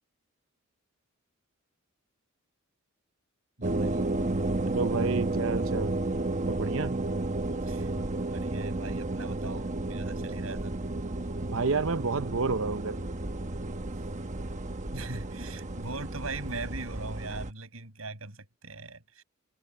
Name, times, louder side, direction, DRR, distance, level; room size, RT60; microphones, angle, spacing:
sound 1, 3.6-17.5, right 2 dB, 35° right, 1.1 m, -32 dB
voice 1, 3.6-4.1 7.5-10.9 14.9-19.2, right 3 dB, 85° right, 6.1 m, -41 dB
voice 2, 4.6-5.9 6.5-7.1 11.4-13.1, right 4 dB, 70° right, 0.8 m, -30 dB
head